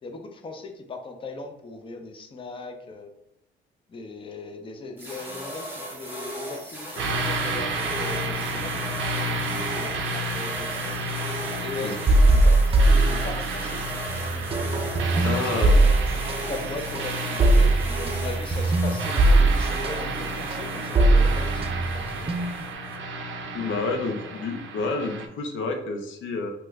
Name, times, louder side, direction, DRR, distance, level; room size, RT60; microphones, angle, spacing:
voice 1, 0.0-3.1 3.9-11.0 11.6-13.8 14.3-14.4 15.1-21.7 21.9-22.3 23.6-24.4, left 3 dB, 25° left, 4 dB, 0.5 m, -39 dB
sound 1, 5.0-23.0, equal, 10° right, 1.0 m, -38 dB
sound 2, 7.0-25.3, right 2 dB, 75° right, 0.5 m, -31 dB
sound 3, 12.1-13.8 14.1-22.7, right 2 dB, 30° right, 0.4 m, -20 dB
voice 2, 15.2-15.7 23.5-26.5, left 3 dB, 75° left, 5 dB, 0.6 m, -29 dB
2.9 x 2.2 x 3.4 m, 0.83 s
cardioid pair, 90°, 20 cm